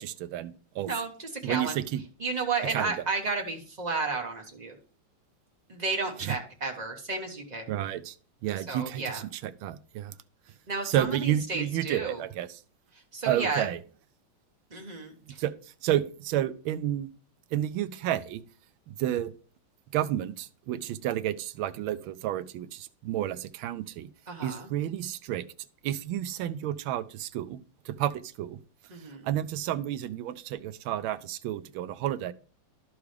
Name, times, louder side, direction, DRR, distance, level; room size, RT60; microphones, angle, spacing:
voice 1, 0.0-0.9 1.4-2.0 2.7-2.9 6.2-6.3 7.7-8.2 8.4-10.2 10.8-12.6 13.2-13.8 15.4-17.1 17.5-18.4 18.9-19.3 19.9-24.1 24.4-25.4 25.8-27.6 27.8-28.6 29.2-32.3, right 12 dB, 75° right, 13 dB, 1.3 m, -31 dB
voice 2, 0.9-1.8 2.2-4.8 5.7-7.7 8.7-9.2 10.7-12.2 13.1-13.7 14.7-15.4 24.3-24.7 28.9-29.3, right 4 dB, 40° right, 2 dB, 0.6 m, -32 dB
11.5 x 4.8 x 3.3 m, 0.39 s
omnidirectional pair, 2.4 m